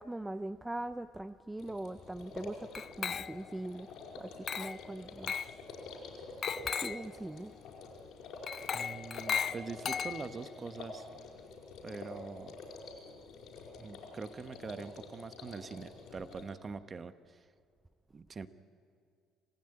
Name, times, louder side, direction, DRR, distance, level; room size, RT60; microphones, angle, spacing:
voice 1, 0.0-2.7 3.0-3.9 4.1-5.3 6.2-6.3 6.6-7.6, right 1 dB, 10° right, 12 dB, 0.5 m, -41 dB
sound 1, 1.6-16.5, left 3 dB, 75° left, 5.0 m, -48 dB
Glass, 2.7-3.6 4.5-4.9 5.3-5.6 6.4-7.1 8.5-10.5, left 7 dB, 45° left, 0.5 m, -36 dB
voice 2, 8.7-11.1 11.8-12.6 13.8-17.4 18.1-18.5, right 5 dB, 30° right, 12 dB, 1.1 m, -44 dB
26.5 x 16.0 x 9.0 m, 2.3 s
cardioid pair, 105°, 0 cm